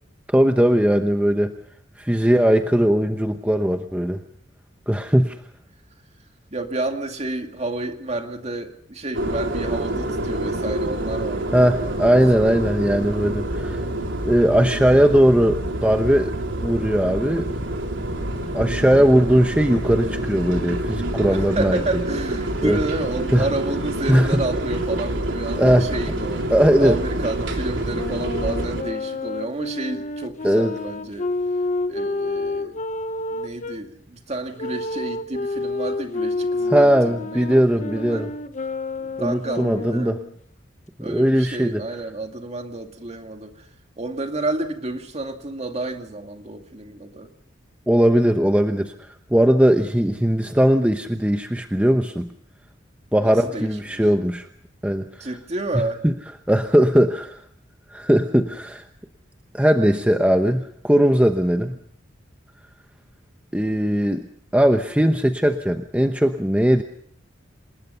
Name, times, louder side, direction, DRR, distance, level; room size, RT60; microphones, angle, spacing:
voice 1, 0.3-1.5 2.0-4.2 4.9-5.4 11.5-13.8 14.2-16.4 16.6-17.5 18.5-21.8 22.6-22.8 23.3-23.5 24.1-24.4 25.6-25.9 26.5-27.0 30.4-30.7 36.7-38.3 39.2-40.2 41.0-41.8 47.9-52.3 53.1-54.5 54.8-55.3 56.0-56.1 56.5-57.4 57.9-58.8 59.5-61.8 63.5-64.3 64.5-66.8, equal, 5° right, 6 dB, 0.9 m, -19 dB
voice 2, 6.5-12.2 21.3-31.3 31.9-32.8 33.3-38.3 39.0-40.1 41.0-43.7 44.0-47.3 53.2-54.0 55.2-56.0 61.7-61.8, right 2 dB, 35° right, 5 dB, 2.3 m, -30 dB
sound 1, 9.1-28.8, right 1 dB, 90° right, 3.3 m, -27 dB
Wind instrument woodwind instrument, 27.9-33.8 34.6-40.3, left 2 dB, 40° left, 1.1 m, -29 dB
26.5 x 20.5 x 5.6 m, 0.64 s
head